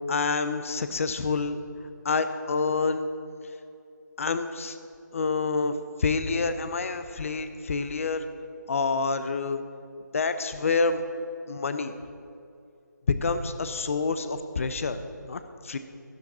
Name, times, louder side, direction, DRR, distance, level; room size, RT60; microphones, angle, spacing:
voice 1, 0.1-1.6 2.0-3.1 4.2-4.8 5.1-8.2 8.7-9.6 10.1-11.0 11.5-11.9 13.1-15.0 15.3-15.8, left 4 dB, 45° left, 10 dB, 0.8 m, -27 dB
12.5 x 12.5 x 4.3 m, 2.5 s
figure-of-eight pair, 160°, 10 cm